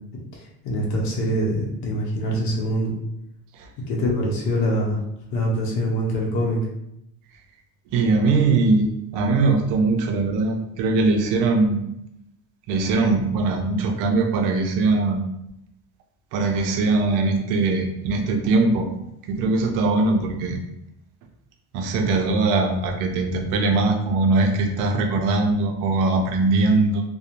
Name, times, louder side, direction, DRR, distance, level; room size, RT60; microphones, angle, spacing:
voice 1, 0.3-2.9 3.9-5.0 5.3-6.6, equal, 55° left, -1 dB, 0.7 m, -24 dB
voice 2, 7.9-11.9 12.7-15.2 16.3-18.9 19.3-20.6 21.7-27.0, right 3 dB, 65° right, 4 dB, 0.5 m, -21 dB
2.9 x 2.1 x 2.4 m, 0.80 s
cardioid pair, 165°, 34 cm